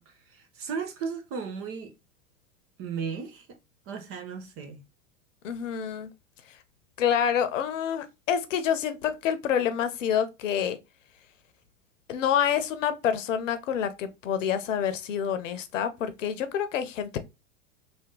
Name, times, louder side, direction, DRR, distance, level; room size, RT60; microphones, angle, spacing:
voice 1, 0.0-2.0 2.8-3.5 3.9-4.9, right 6 dB, 35° right, 0.8 m, -35 dB
voice 2, 5.4-6.1 7.0-10.8 12.1-17.2, left 8 dB, 70° left, 0.8 m, -27 dB
3.5 x 2.7 x 3.7 m
hypercardioid pair, 105°, 39 cm